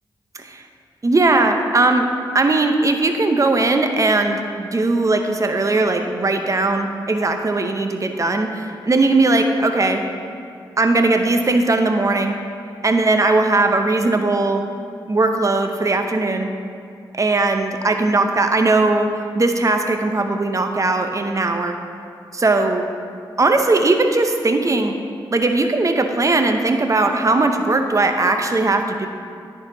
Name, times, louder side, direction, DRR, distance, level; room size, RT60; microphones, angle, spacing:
voice 1, 1.0-2.1 2.3-10.0 10.8-12.4 12.8-14.6 15.1-16.5 17.1-21.8 22.3-22.9 23.4-24.9 25.3-29.1, right 2 dB, 35° right, 6 dB, 0.7 m, -18 dB
10.0 x 4.6 x 3.9 m, 2.3 s
supercardioid pair, 45°, 9 cm